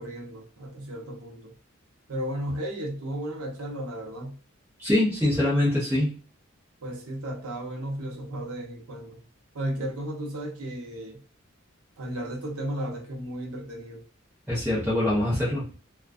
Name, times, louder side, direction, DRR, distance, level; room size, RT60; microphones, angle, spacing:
voice 1, 0.0-1.5 2.1-4.4 6.8-9.2 9.5-11.2 12.0-14.0, right 1 dB, 85° right, 0.7 m, -34 dB
voice 2, 4.8-6.1 14.5-15.7, left 1 dB, 10° right, 0.7 m, -24 dB
2.4 x 2.2 x 2.3 m
head